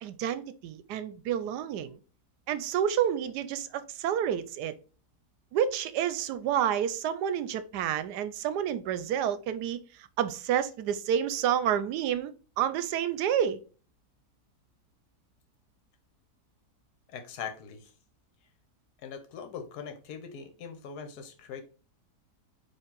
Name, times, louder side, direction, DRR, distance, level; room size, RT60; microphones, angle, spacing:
voice 1, 0.0-2.0 2.5-4.7 5.5-13.6, right 9 dB, 80° right, 1.1 m, -29 dB
voice 2, 17.1-17.9 19.0-21.6, left 6 dB, 70° left, 1.4 m, -41 dB
4.5 x 3.1 x 3.7 m
omnidirectional pair, 1.8 m